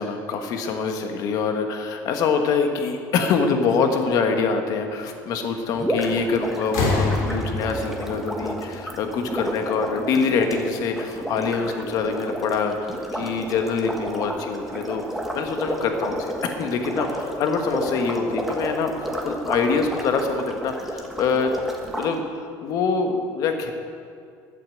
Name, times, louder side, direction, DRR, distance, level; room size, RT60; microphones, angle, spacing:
voice 1, 0.0-15.0 15.3-18.9 19.2-21.5 21.9-23.7, left 5 dB, 55° left, 5 dB, 1.5 m, -25 dB
sound 1, 5.8-22.1, equal, 5° right, 1.4 m, -31 dB
sound 2, 6.0-6.3 6.6-9.4 10.5-10.6, left 3 dB, 85° left, 3.6 m, -27 dB
11.5 x 8.6 x 7.8 m, 2.3 s
cardioid pair, 145°, 7 cm